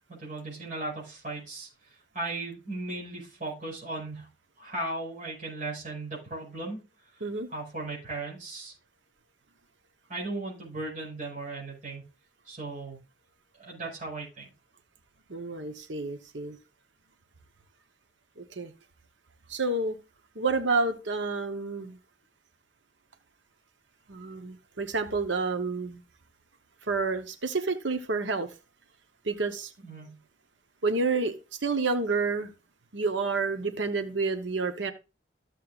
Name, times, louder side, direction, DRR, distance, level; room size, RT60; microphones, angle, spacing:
voice 1, 0.1-4.3 4.6-6.8 7.5-8.7 10.1-12.0 12.4-13.0 13.6-14.5 29.8-30.2, right 2 dB, 45° right, -5 dB, 5.5 m, -37 dB
voice 2, 15.3-16.6 18.4-18.7 19.5-20.0 20.3-22.0 24.1-26.0 26.8-28.5 29.2-29.7 30.8-31.4 31.6-32.5 32.9-34.9, right 3 dB, 90° right, 8 dB, 1.0 m, -29 dB
14.0 x 7.4 x 2.4 m, 0.30 s
head